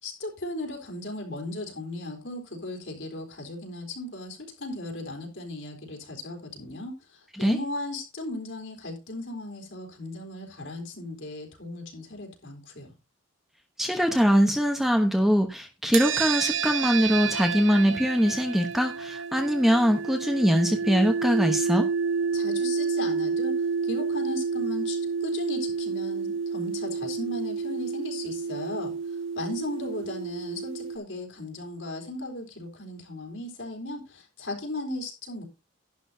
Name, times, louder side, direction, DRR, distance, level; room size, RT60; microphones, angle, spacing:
voice 1, 0.0-12.9 22.3-23.5 23.8-28.9 29.4-35.4, left 2 dB, 70° left, 3.8 m, -36 dB
voice 2, 13.8-21.9, equal, ahead, 1.0 m, -22 dB
sound 1, 15.9-31.0, right 5 dB, 80° right, 1.0 m, -30 dB
11.5 x 10.5 x 2.8 m
head